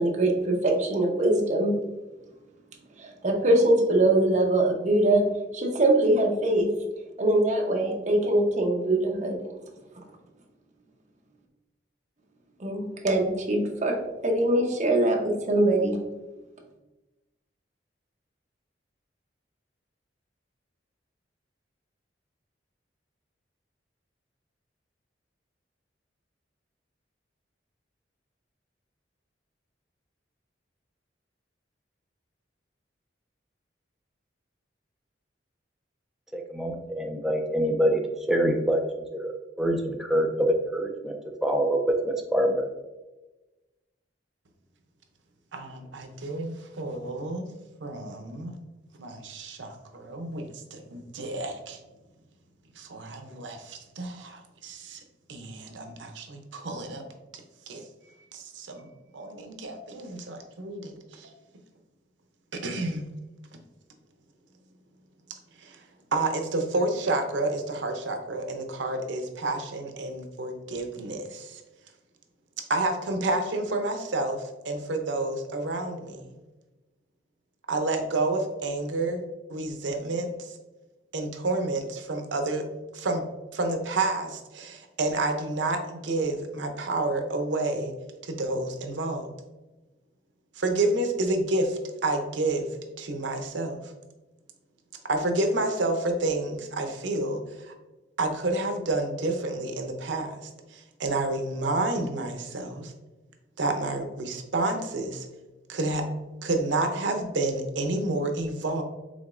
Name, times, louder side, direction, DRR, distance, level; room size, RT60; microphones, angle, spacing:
voice 1, 0.0-1.7 3.0-5.2 5.5-6.7 7.2-9.4 12.6-16.0, right 1 dB, 40° right, 1 dB, 0.8 m, -23 dB
voice 2, 36.3-38.0 38.3-38.8 39.1-41.2 41.4-42.6, equal, ahead, 1 dB, 0.3 m, -25 dB
voice 3, 45.5-47.5 47.8-48.5 49.0-50.4 50.7-51.8 52.8-55.0 55.3-57.0 57.7-57.8 58.3-61.3 62.6-63.1 65.6-65.8 66.1-71.6 72.7-76.2 77.7-79.2 79.5-80.5 81.1-82.6 82.9-83.2 83.5-87.9 88.2-89.3 90.6-92.7 93.0-93.8 95.1-97.7 98.2-102.9 103.6-105.3 105.7-106.0 106.4-108.8, right 2 dB, 80° right, 5 dB, 0.6 m, -29 dB
5.0 x 3.6 x 2.5 m, 1.1 s
head